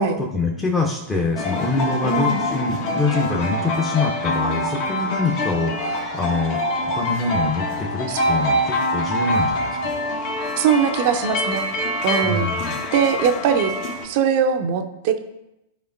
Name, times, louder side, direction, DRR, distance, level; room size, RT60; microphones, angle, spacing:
voice 1, 0.0-6.6 6.9-10.0 12.2-12.8, left 3 dB, 15° left, -2 dB, 1.0 m, -25 dB
sound 1, 1.3-14.0, left 1 dB, 45° left, 1.4 m, -25 dB
voice 2, 2.0-2.4 8.1-8.4 10.5-11.7 12.0-12.5 12.9-13.7 14.0-15.2, right 7 dB, 45° right, 7 dB, 0.8 m, -21 dB
12.5 x 5.0 x 2.6 m, 0.90 s
figure-of-eight pair, 95°, 0 cm